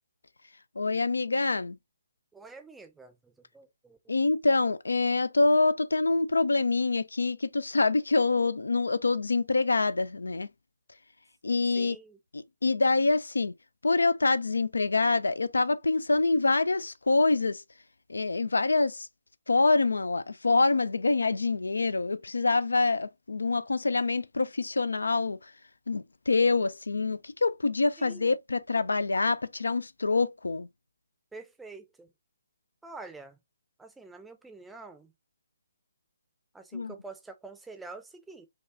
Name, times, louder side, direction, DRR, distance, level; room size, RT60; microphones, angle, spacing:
voice 1, 0.8-1.8 4.1-10.5 11.4-12.0 12.3-13.5 13.8-17.6 18.1-19.1 19.5-25.4 25.9-30.7 36.7-36.9, left 3 dB, 75° left, 0.4 m, -26 dB
voice 2, 2.3-4.2 11.7-12.2 28.0-28.3 31.3-32.1 32.8-33.4 33.8-35.1 36.5-38.5, right 3 dB, 5° right, 0.5 m, -47 dB
4.6 x 2.3 x 2.6 m
figure-of-eight pair, 140°, 0 cm